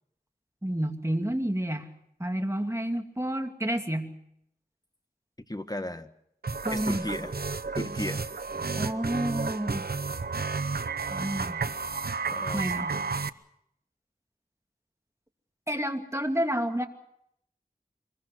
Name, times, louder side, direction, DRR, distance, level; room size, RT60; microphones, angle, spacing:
voice 1, 0.6-1.9 2.2-4.1 6.6-7.1 8.7-9.9 11.1-11.7 12.5-13.0 15.7-16.8, right 1 dB, 20° right, 4 dB, 2.6 m, -30 dB
voice 2, 5.5-6.1 6.7-7.3 7.7-8.2 8.5-8.7 12.3-12.7, left 1 dB, 25° left, 9 dB, 1.6 m, -35 dB
sound 1, 6.4-13.3, right 4 dB, 80° right, 0.8 m, -32 dB
25.0 x 21.5 x 6.2 m, 0.74 s
wide cardioid pair, 45°, 16 cm